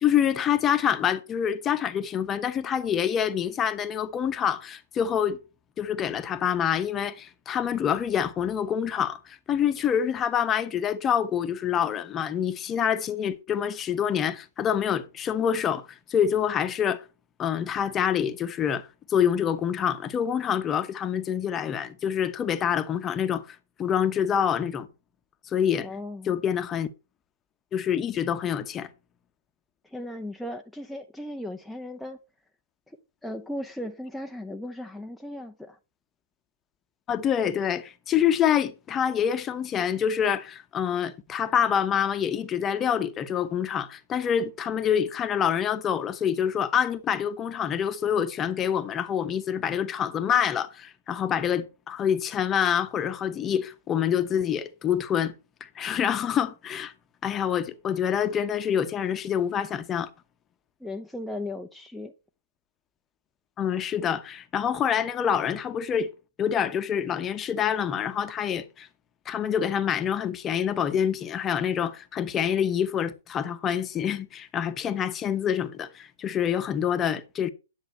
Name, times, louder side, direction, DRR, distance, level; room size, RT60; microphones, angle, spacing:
voice 1, 0.0-5.4 5.8-17.0 17.4-24.9 25.5-25.9 26.3-26.9 27.7-28.9 37.1-55.3 55.6-56.9 57.2-60.1 63.6-66.1 66.4-68.9 69.3-77.5, left 8 dB, 20° left, 0.9 m, -26 dB
voice 2, 25.8-26.3 29.8-32.2 32.9-35.8 60.8-62.1, left 1 dB, ahead, 0.6 m, -37 dB
10.5 x 8.2 x 4.4 m
hypercardioid pair, 120°, 0 cm